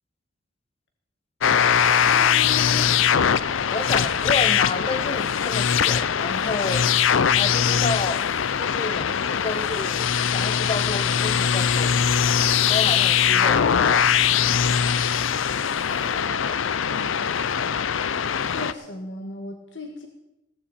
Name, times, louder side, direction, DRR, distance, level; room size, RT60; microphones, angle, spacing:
sound 1, 1.4-18.7, left 8 dB, 80° left, 0.5 m, -21 dB
voice 1, 2.0-2.9 15.8-17.2 17.6-17.7 18.5-20.1, left 2 dB, 65° left, 3 dB, 1.6 m, -36 dB
voice 2, 3.7-6.8 7.3-8.2 8.6-12.0 12.7-14.1, left 3 dB, 30° left, 11 dB, 0.7 m, -30 dB
16.5 x 14.0 x 4.3 m, 0.83 s
head